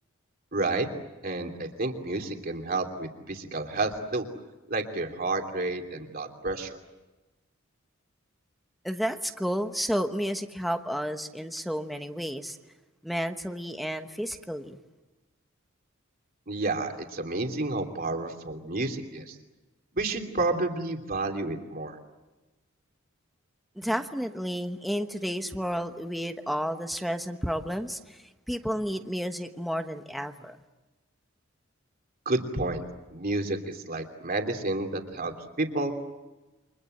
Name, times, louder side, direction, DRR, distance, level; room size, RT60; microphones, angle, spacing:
voice 1, 0.5-0.9 1.2-4.3 4.7-6.8 16.5-19.3 19.9-22.0 23.8-23.9 32.2-32.8 33.1-35.9, right 2 dB, 45° right, 4 dB, 3.0 m, -30 dB
voice 2, 8.8-12.6 13.0-14.8 23.8-30.6, equal, ahead, 6 dB, 1.2 m, -31 dB
29.5 x 24.5 x 7.9 m, 1.1 s
head